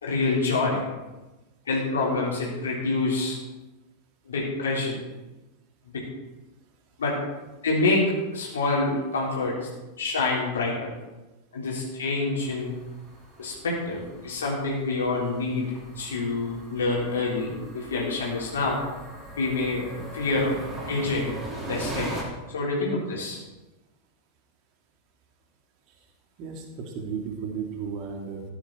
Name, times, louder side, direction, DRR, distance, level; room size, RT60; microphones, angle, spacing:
voice 1, 0.0-0.9 1.7-3.4 4.3-4.9 5.9-6.0 7.0-7.2 7.6-9.6 10.0-10.9 11.5-12.7 13.4-18.8 19.4-20.6 20.9-21.4 21.7-22.2 22.5-23.4, left 3 dB, 65° left, -4 dB, 3.6 m, -27 dB
sound 1, 12.4-22.2, right 1 dB, 15° right, 3.8 m, -40 dB
voice 2, 26.4-28.4, right 6 dB, 40° right, 2 dB, 2.7 m, -34 dB
14.5 x 10.0 x 4.6 m, 1.1 s
figure-of-eight pair, 90°, 0 cm